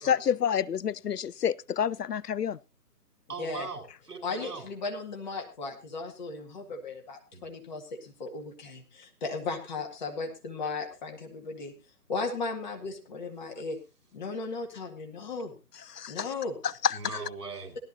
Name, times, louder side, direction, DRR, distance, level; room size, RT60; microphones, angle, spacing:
voice 1, 0.1-2.6 15.9-16.3 16.6-17.2, left 8 dB, 75° left, 0.6 m, -28 dB
voice 2, 3.3-4.7 7.3-7.4 16.9-17.8, right 4 dB, 65° right, 4.8 m, -40 dB
voice 3, 4.2-11.7 12.1-13.8 14.1-15.5 16.1-16.5, left 3 dB, 25° left, 2.0 m, -36 dB
17.5 x 13.0 x 2.8 m
figure-of-eight pair, 150°, 49 cm